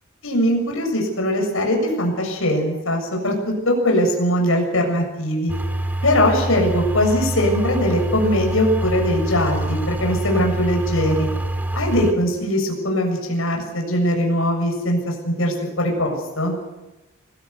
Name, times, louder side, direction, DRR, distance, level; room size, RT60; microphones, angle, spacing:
voice 1, 0.2-5.5 6.0-11.3 11.7-16.5, equal, 65° left, 1 dB, 7.3 m, -21 dB
sound 1, 5.5-12.1, right 1 dB, 10° right, 2.4 m, -25 dB
25.0 x 17.5 x 8.2 m, 1.0 s
head